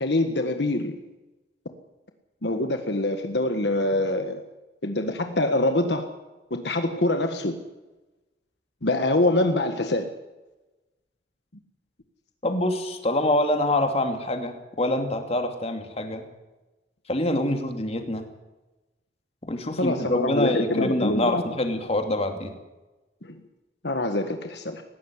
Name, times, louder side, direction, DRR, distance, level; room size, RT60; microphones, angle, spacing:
voice 1, 0.0-1.0 2.4-4.4 4.8-6.1 6.5-7.6 8.8-10.1 19.8-21.4 23.8-24.8, left 2 dB, 70° left, 6 dB, 1.6 m, -24 dB
voice 2, 12.4-16.2 17.1-18.3 19.5-22.5, left 1 dB, 35° left, 5 dB, 2.7 m, -25 dB
19.0 x 16.0 x 9.8 m, 1.1 s
head